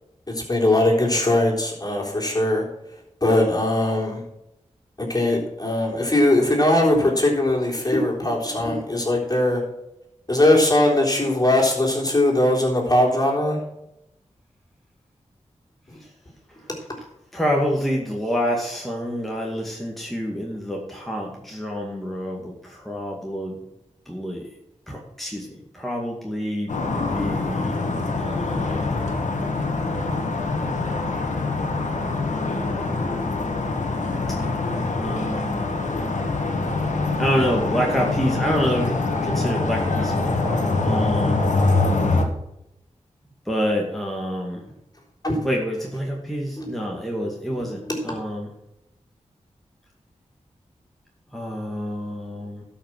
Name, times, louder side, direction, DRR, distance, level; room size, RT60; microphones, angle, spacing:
voice 1, 0.3-2.6 3.2-4.2 5.0-9.6 10.3-13.6 15.9-16.0 45.2-45.4 46.6-46.7 48.1-48.2, left 1 dB, 30° left, -2 dB, 3.6 m, -20 dB
voice 2, 17.3-23.6 24.1-24.5 24.9-26.7 27.1-27.8 28.2-29.0 35.0-35.8 37.2-41.5 43.5-44.6 45.4-48.5 51.3-52.6, equal, ahead, -2 dB, 2.1 m, -27 dB
sound 1, 26.7-42.3, left 3 dB, 85° left, 1.5 m, -24 dB
12.5 x 5.8 x 6.1 m, 0.86 s
cardioid pair, 60°, 12 cm